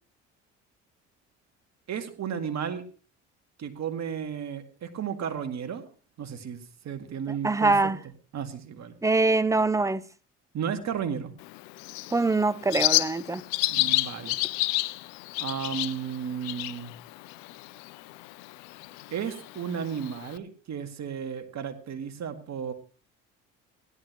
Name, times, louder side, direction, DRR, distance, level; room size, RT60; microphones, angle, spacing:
voice 1, 1.9-2.8 3.6-5.8 6.2-7.9 8.3-9.0 10.5-11.3 13.7-14.4 15.4-16.9 19.1-22.7, right 7 dB, 55° right, 2.0 m, -33 dB
voice 2, 7.4-8.0 9.0-10.0 12.1-13.4, right 3 dB, 10° right, 0.6 m, -23 dB
Bird, 11.4-20.4, left 21 dB, 80° left, 0.6 m, -31 dB
17.0 x 11.0 x 3.0 m
hypercardioid pair, 60°, 34 cm